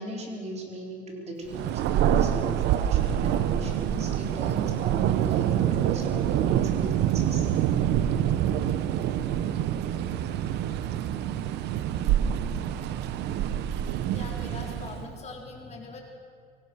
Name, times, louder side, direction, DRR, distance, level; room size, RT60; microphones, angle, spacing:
voice 1, 0.0-7.5, right 1 dB, 40° right, 0 dB, 4.5 m, -38 dB
Thunder, 1.5-15.1, right 10 dB, 85° right, 1.0 m, -26 dB
voice 2, 14.1-16.0, left 3 dB, 40° left, -1 dB, 4.7 m, -41 dB
24.0 x 18.5 x 6.4 m, 2.2 s
cardioid pair, 110°, 17 cm